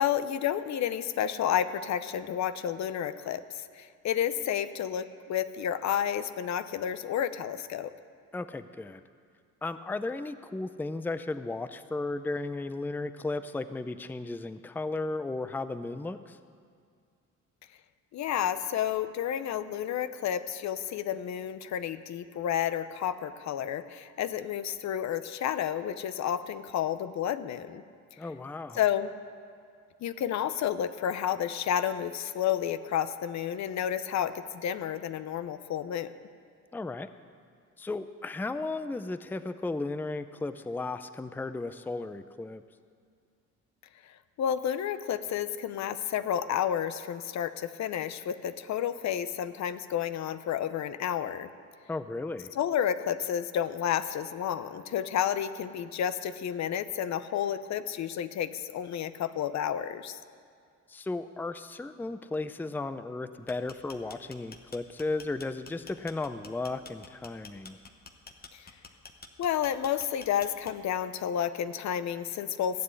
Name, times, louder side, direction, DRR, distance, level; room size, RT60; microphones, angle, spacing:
voice 1, 0.0-7.9 18.1-27.8 28.7-29.1 30.0-36.1 44.0-51.5 52.6-60.2 68.5-68.7 69.4-72.8, left 9 dB, 65° left, 13 dB, 0.7 m, -31 dB
voice 2, 8.3-9.0 9.6-16.4 28.2-28.8 36.7-37.1 37.8-42.6 51.9-52.5 60.9-67.8, left 2 dB, 5° left, 12 dB, 0.5 m, -35 dB
sound 1, 63.3-71.0, left 4 dB, 30° left, 1.1 m, -49 dB
15.5 x 7.6 x 8.3 m, 2.2 s
cardioid pair, 90°, 30 cm